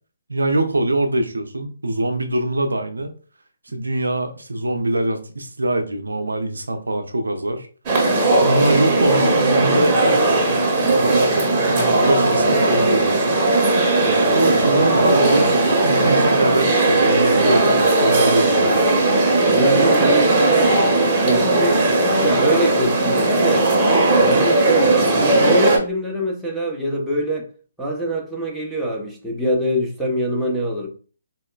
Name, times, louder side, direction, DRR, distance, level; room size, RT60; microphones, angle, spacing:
voice 1, 0.3-3.1 3.7-7.7 8.4-10.2 10.8-13.4 14.3-18.7, right 1 dB, 75° right, 0.5 m, -23 dB
sound 1, 7.9-25.8, right 2 dB, 25° right, 0.9 m, -17 dB
voice 2, 14.0-14.4 19.5-20.8 21.2-21.9 22.2-23.7 24.1-27.5 27.8-30.9, right 1 dB, ahead, 0.6 m, -24 dB
4.0 x 2.1 x 2.2 m
figure-of-eight pair, 140°, 0 cm